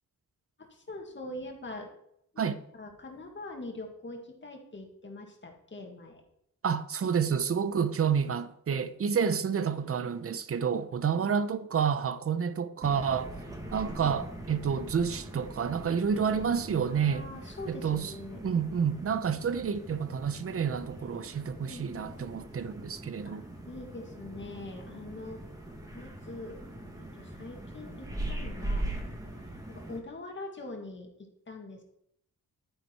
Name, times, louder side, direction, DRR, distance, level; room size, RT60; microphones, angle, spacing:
voice 1, 0.6-1.9 2.3-6.2 11.1-11.4 13.8-14.2 16.9-18.4 21.6-22.3 23.3-23.4 23.7-25.4 25.9-26.6 27.1-28.9 29.7-31.8, left 2 dB, 35° left, 2.0 m, -43 dB
voice 2, 6.6-13.3 13.7-17.3 17.7-18.1 18.4-23.4, right 7 dB, 45° right, 0.7 m, -29 dB
sound 1, 12.8-30.0, right 1 dB, 10° right, 1.8 m, -41 dB
11.0 x 9.7 x 4.5 m
wide cardioid pair, 180°, 33 cm